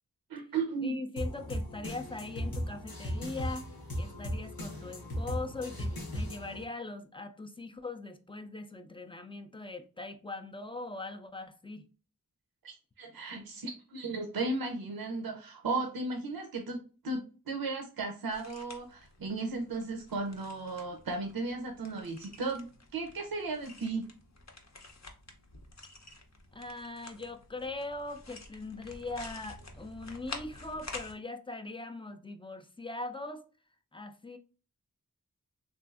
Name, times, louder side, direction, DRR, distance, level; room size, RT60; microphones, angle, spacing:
voice 1, 0.3-1.0 12.6-22.7 22.9-24.1, right 3 dB, 85° right, 0.5 m, -35 dB
voice 2, 0.8-3.7 4.0-11.8 26.5-33.4 33.9-34.4, left 2 dB, 15° left, 0.3 m, -41 dB
sound 1, 1.2-6.6, equal, 90° left, 0.8 m, -37 dB
sound 2, 18.3-31.1, left 3 dB, 50° left, 0.6 m, -49 dB
3.1 x 2.6 x 2.3 m
wide cardioid pair, 40°, 35 cm